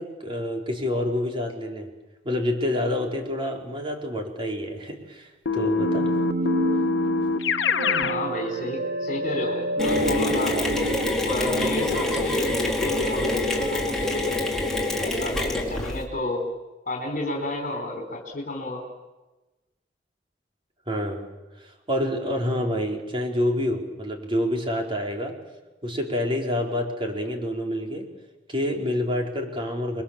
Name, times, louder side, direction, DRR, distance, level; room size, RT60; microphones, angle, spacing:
voice 1, 0.0-1.9 2.2-6.1 20.9-25.4 25.8-28.1 28.5-30.0, left 1 dB, 30° right, 1 dB, 4.3 m, -28 dB
Keyboard (musical), 5.5-8.2, left 4 dB, 85° left, 1.0 m, -24 dB
sound 1, 5.8-14.7, right 1 dB, 70° right, 1.9 m, -30 dB
voice 2, 8.0-11.0 11.3-14.4 15.0-16.5 16.9-18.8, left 1 dB, 50° left, 1 dB, 4.4 m, -31 dB
Mechanisms, 9.8-16.0, left 2 dB, 5° left, 4.6 m, -26 dB
30.0 x 23.0 x 7.4 m, 1.1 s
head